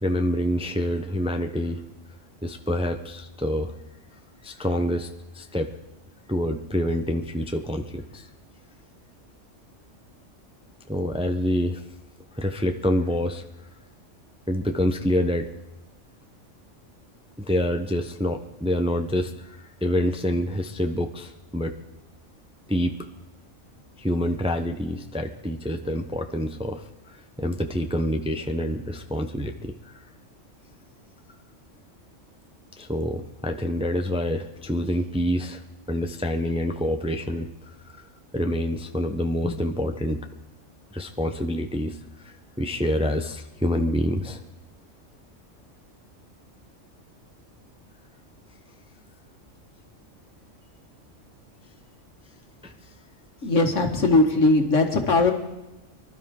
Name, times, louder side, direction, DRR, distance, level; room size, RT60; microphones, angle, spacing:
voice 1, 0.0-1.8 2.4-3.7 4.4-5.1 5.3-5.7 6.3-8.3 10.9-11.8 12.3-13.4 14.5-15.5 17.4-21.7 22.7-23.0 24.0-29.9 32.8-35.6 35.9-37.5 37.9-38.0 38.3-40.2 40.9-42.0 42.2-44.4 52.6-52.7, equal, 5° right, 5 dB, 0.7 m, -27 dB
voice 2, 53.4-55.3, left 2 dB, 75° left, 4 dB, 2.1 m, -19 dB
24.5 x 12.5 x 3.8 m, 0.98 s
omnidirectional pair, 1.3 m